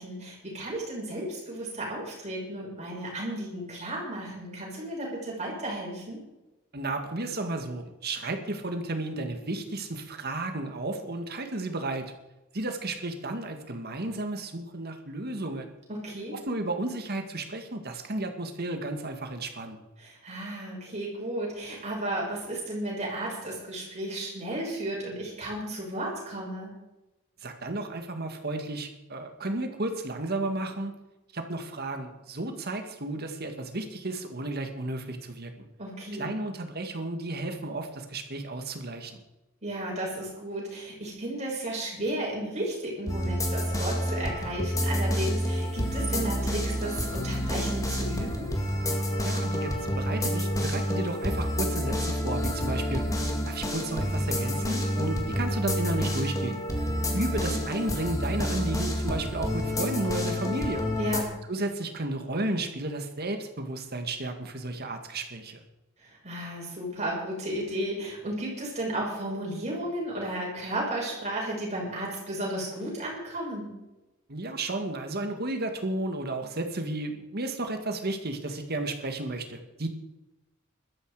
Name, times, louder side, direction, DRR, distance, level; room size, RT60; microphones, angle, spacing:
voice 1, 0.0-6.2 15.9-16.4 20.0-26.7 35.8-36.3 39.6-48.5 57.4-57.6 61.0-61.3 66.0-73.7, right 1 dB, 30° right, -3 dB, 6.1 m, -34 dB
voice 2, 6.7-12.0 12.5-15.7 16.3-19.8 27.4-31.0 31.3-35.5 36.1-39.2 49.2-53.0 53.4-56.6 57.1-60.8 61.5-65.6 74.3-79.9, right 2 dB, 45° right, 6 dB, 1.9 m, -33 dB
sound 1, 43.1-61.2, equal, 15° left, 2.1 m, -29 dB
15.5 x 13.0 x 4.9 m, 1.0 s
head